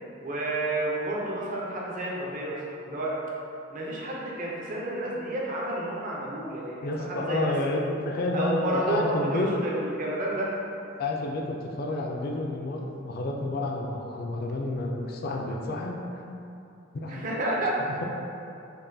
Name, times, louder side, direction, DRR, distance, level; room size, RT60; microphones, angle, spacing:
voice 1, 0.2-3.2 3.7-7.8 8.3-10.5 17.1-17.8, right 1 dB, 40° right, -4 dB, 0.6 m, -30 dB
voice 2, 6.8-9.5 11.0-16.4 16.9-17.2, left 2 dB, 50° left, 1 dB, 0.4 m, -30 dB
5.3 x 2.2 x 2.6 m, 2.7 s
head